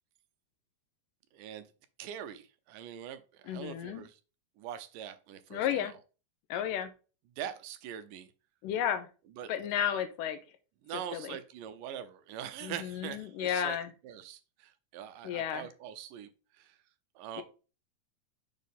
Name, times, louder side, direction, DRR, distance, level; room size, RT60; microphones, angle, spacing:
voice 1, 1.3-1.7 2.0-4.2 4.6-5.9 7.4-8.3 9.4-9.5 10.8-13.8 14.0-16.8 17.2-17.4, right 9 dB, 85° right, 10 dB, 2.3 m, -43 dB
voice 2, 3.5-4.0 5.5-5.9 6.5-6.9 8.6-9.1 9.5-10.4 11.1-11.4 12.6-13.9 15.2-15.7 17.4-17.5, left 9 dB, 90° left, 9 dB, 2.4 m, -33 dB
7.3 x 4.2 x 3.5 m, 0.34 s
omnidirectional pair, 3.8 m